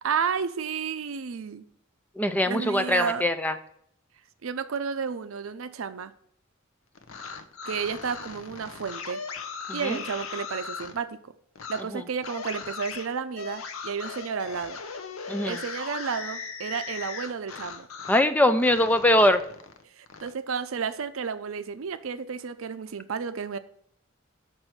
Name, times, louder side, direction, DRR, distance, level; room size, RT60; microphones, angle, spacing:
voice 1, 0.0-1.6 2.4-3.2 4.4-6.1 7.7-9.2 9.7-11.2 11.7-14.8 15.5-17.9 19.9-23.6, right 6 dB, 70° right, 11 dB, 0.5 m, -32 dB
voice 2, 2.2-3.5 9.7-10.0 11.9-12.0 15.3-15.6 18.1-19.4, left 1 dB, 10° left, 9 dB, 0.4 m, -22 dB
sound 1, 6.9-11.0 11.5-11.8 12.2-18.3 18.6-20.3, left 5 dB, 90° left, 0.8 m, -38 dB
6.1 x 4.5 x 6.4 m, 0.66 s
head